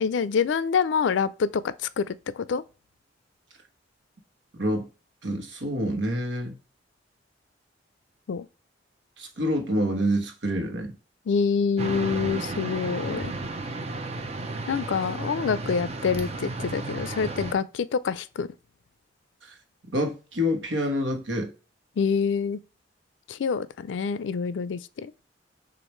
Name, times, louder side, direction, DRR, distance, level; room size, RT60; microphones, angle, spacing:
voice 1, 0.0-2.6 8.3-8.5 11.3-13.3 14.7-18.5 22.0-22.6 23.3-25.1, left 6 dB, 75° left, 0.4 m, -26 dB
voice 2, 5.2-6.6 9.2-10.9 19.4-19.5 19.9-21.5, equal, 80° right, 1.1 m, -27 dB
sound 1, 11.8-17.5, right 2 dB, 35° right, 0.6 m, -33 dB
6.4 x 2.5 x 3.0 m
head